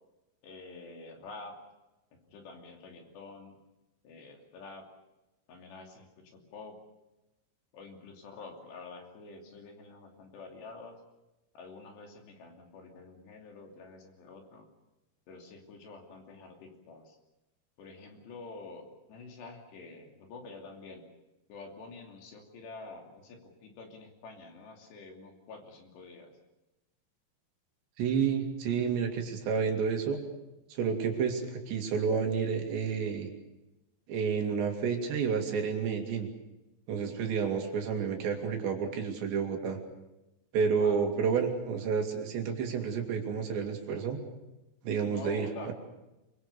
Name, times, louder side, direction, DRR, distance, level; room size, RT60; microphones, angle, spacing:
voice 1, 0.4-1.5 2.3-3.6 4.0-4.9 5.5-6.8 7.7-11.0 11.5-14.7 15.3-17.2 17.8-18.8 19.1-21.0 21.5-26.3 31.1-31.4 37.0-37.3 40.8-41.1 45.0-45.7, left 3 dB, 65° left, 3 dB, 4.9 m, -48 dB
voice 2, 28.0-30.2 30.7-33.3 34.1-36.3 36.9-39.8 40.5-44.2 44.8-45.7, right 6 dB, 70° right, 3 dB, 4.5 m, -30 dB
24.5 x 23.5 x 6.8 m, 0.98 s
omnidirectional pair, 5.3 m